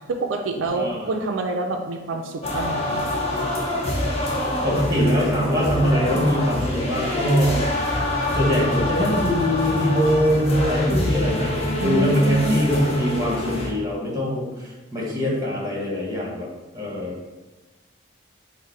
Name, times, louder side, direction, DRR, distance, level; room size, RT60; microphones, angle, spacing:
voice 1, 0.1-3.0 11.8-12.6, right 3 dB, 80° right, 3 dB, 0.4 m, -26 dB
voice 2, 0.7-1.1 4.6-7.6 8.3-17.3, equal, 15° right, -4 dB, 1.1 m, -23 dB
sound 1, 2.4-13.7, left 1 dB, 30° left, 0.7 m, -25 dB
4.6 x 2.1 x 4.4 m, 1.2 s
head